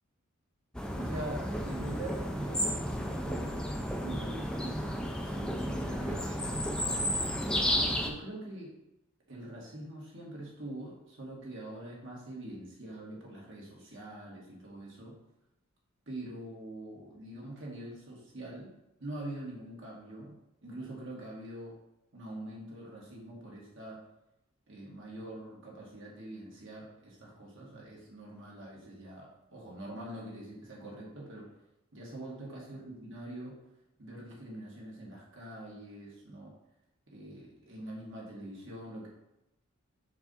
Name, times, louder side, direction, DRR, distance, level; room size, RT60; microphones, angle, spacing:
sound 1, 0.7-8.1, equal, 5° left, 0.5 m, -32 dB
voice 1, 0.9-2.9 3.2-3.6 4.0-7.2 8.0-8.8 9.3-15.2 16.1-18.7 19.0-21.8 22.1-24.0 24.7-31.5 31.9-33.5 34.0-36.5 37.1-39.1, right 1 dB, 65° right, -3 dB, 1.8 m, -44 dB
4.7 x 3.9 x 5.5 m, 0.88 s
head